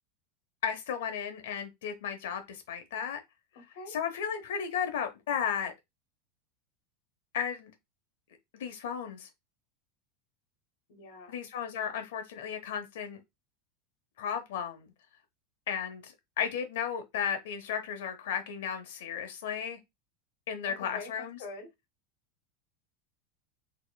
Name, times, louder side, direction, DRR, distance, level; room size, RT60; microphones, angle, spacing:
voice 1, 0.6-3.2 3.9-5.7 7.3-7.7 8.6-9.3 11.3-13.2 14.2-14.9 15.7-19.8 20.5-21.4, left 8 dB, 85° left, 0.9 m, -34 dB
voice 2, 3.5-4.0 10.9-11.4 20.7-21.1 21.4-21.7, left 3 dB, 60° left, 1.2 m, -44 dB
4.1 x 2.9 x 2.3 m
supercardioid pair, 175°, 0 cm